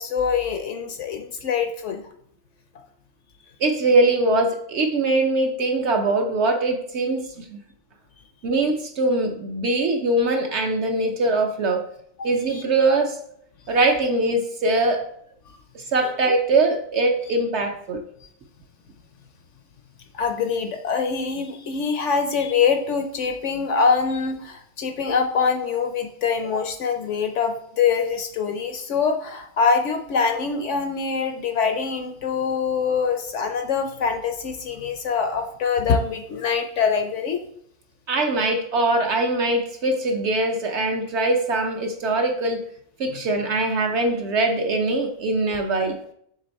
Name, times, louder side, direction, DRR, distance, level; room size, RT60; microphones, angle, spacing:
voice 1, 0.0-2.0 12.5-12.6 16.0-16.1 20.1-37.4, left 5 dB, 65° left, 6 dB, 0.8 m, -24 dB
voice 2, 3.6-7.6 8.4-11.8 12.2-13.2 13.7-15.0 15.7-18.0 38.1-42.6 43.0-46.0, right 2 dB, 60° right, 4 dB, 0.8 m, -22 dB
6.9 x 3.4 x 4.1 m, 0.67 s
omnidirectional pair, 1.5 m